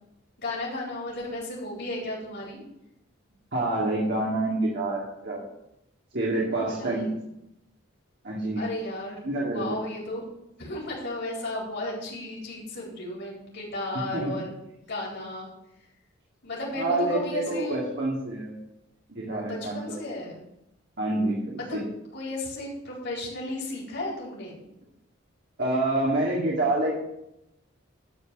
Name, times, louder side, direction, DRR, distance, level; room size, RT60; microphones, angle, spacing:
voice 1, 0.4-2.6 6.3-7.2 8.6-9.2 9.5-10.2 10.6-14.5 14.9-15.5 16.4-17.8 19.3-20.4 21.7-21.8 22.1-24.6, left 2 dB, 55° left, -4 dB, 4.5 m, -34 dB
voice 2, 3.5-5.4 6.1-7.1 8.2-8.6 9.2-9.8 14.1-14.3 16.7-18.6 19.1-20.0 21.0-21.9 25.6-26.9, right 2 dB, 55° right, -4 dB, 2.3 m, -27 dB
12.5 x 4.8 x 7.8 m, 0.84 s
head